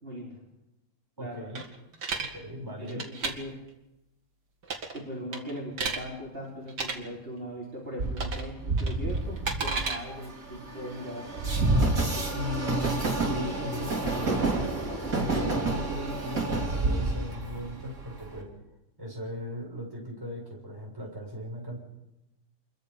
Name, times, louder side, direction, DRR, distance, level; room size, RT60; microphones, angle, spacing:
voice 1, 0.0-0.3 1.2-1.5 2.8-3.5 4.9-11.2, equal, 30° right, -6 dB, 4.9 m, -39 dB
voice 2, 1.2-1.7 2.2-3.0 12.3-18.5 19.0-21.8, left 1 dB, 10° right, -3 dB, 6.9 m, -37 dB
sound 1, 1.6-2.3 2.9-3.3 4.6-5.0 5.3-6.0 6.7-6.9 8.2-8.5 8.8-10.0, right 4 dB, 80° right, 2.8 m, -32 dB
Train, 8.0-18.4, right 2 dB, 55° right, 3.7 m, -29 dB
26.5 x 22.5 x 5.6 m, 0.94 s
omnidirectional pair, 1.8 m